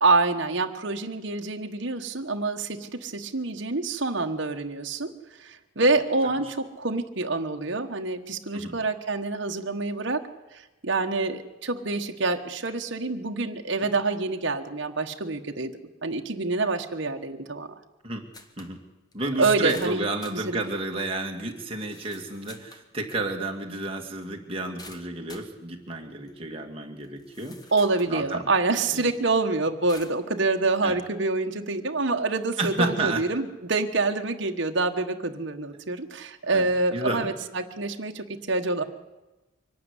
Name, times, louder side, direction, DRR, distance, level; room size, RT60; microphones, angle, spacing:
voice 1, 0.0-5.1 5.4-10.2 10.5-15.7 16.0-17.7 19.4-20.0 20.3-20.6 27.7-38.8, right 3 dB, 60° right, 4 dB, 1.4 m, -26 dB
sound 1, 18.3-18.7 19.1-19.2 19.7-20.4 21.1-21.2 21.8-22.9 24.8-25.5 26.3-26.4 27.0-28.1 28.7-28.8 29.9-30.2, left 3 dB, 20° left, 1.4 m, -47 dB
voice 2, 19.1-27.6 28.1-28.5 28.9-29.1 30.8-31.0 32.6-33.2 36.5-37.3, right 2 dB, 30° right, 2 dB, 2.3 m, -31 dB
24.0 x 12.0 x 9.9 m, 1.1 s
head